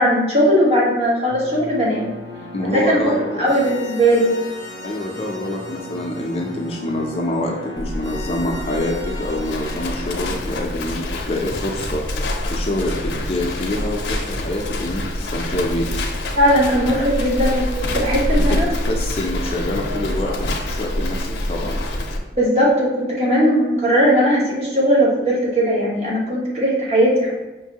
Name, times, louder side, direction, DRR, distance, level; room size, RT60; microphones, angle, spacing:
voice 1, 0.0-2.1 2.7-4.3 16.4-18.7 22.3-27.3, equal, 35° right, -5 dB, 1.1 m, -18 dB
sound 1, 1.3-10.4, left 2 dB, 90° right, 1.4 m, -36 dB
voice 2, 2.5-3.5 4.8-12.1 12.5-15.9 18.5-21.8, left 1 dB, 35° left, 0 dB, 0.5 m, -26 dB
Livestock farm animals working animals, 7.8-22.2, left 1 dB, 90° left, 0.5 m, -26 dB
5.3 x 2.6 x 2.9 m, 1.1 s
head